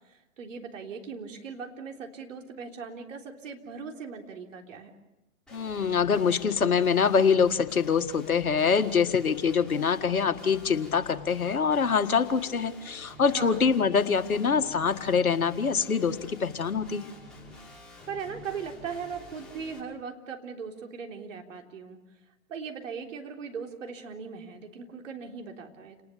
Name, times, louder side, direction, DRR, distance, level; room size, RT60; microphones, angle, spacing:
voice 1, 0.4-4.9 13.2-13.6 18.1-22.0 22.5-26.0, right 6 dB, 60° right, 3 dB, 3.7 m, -39 dB
voice 2, 5.5-17.0, left 6 dB, 80° left, 8 dB, 1.8 m, -24 dB
Guitar, 5.5-19.8, left 2 dB, ahead, 5.4 m, -48 dB
29.0 x 19.5 x 6.9 m, 0.99 s
hypercardioid pair, 125°, 42 cm